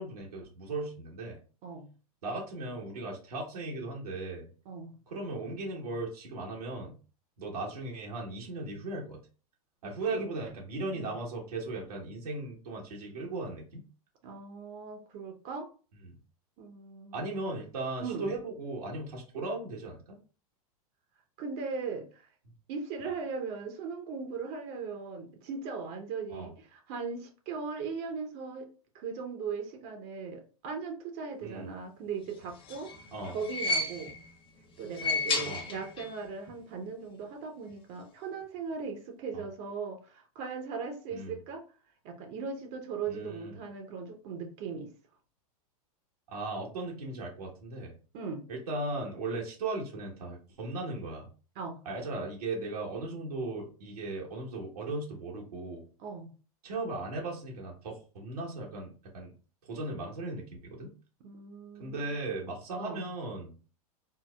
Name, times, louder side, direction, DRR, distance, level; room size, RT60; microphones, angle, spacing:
voice 1, 0.0-1.4 2.2-4.5 5.1-6.9 7.4-9.2 9.8-13.8 16.1-16.2 17.1-20.2 26.3-26.5 31.4-31.7 33.1-33.3 35.4-35.6 39.3-39.4 41.1-41.4 43.1-43.6 46.3-47.9 48.5-51.3 51.8-55.8 56.6-59.3 59.6-60.9 61.8-63.6, right 2 dB, 85° right, 1.2 m, -37 dB
voice 2, 14.2-15.7 16.6-17.4 18.0-18.3 21.4-22.3 22.7-28.7 28.9-32.9 33.3-34.1 34.8-41.6 42.0-44.9 48.1-48.4 51.6-51.8 56.0-56.3 61.2-62.0 62.8-63.1, right 5 dB, 50° right, 0.8 m, -38 dB
sound 1, 32.4-34.3 34.8-36.2 36.5-36.6 37.7-37.8, left 3 dB, 25° left, 0.6 m, -33 dB
4.5 x 2.0 x 2.2 m
hypercardioid pair, 110°, 19 cm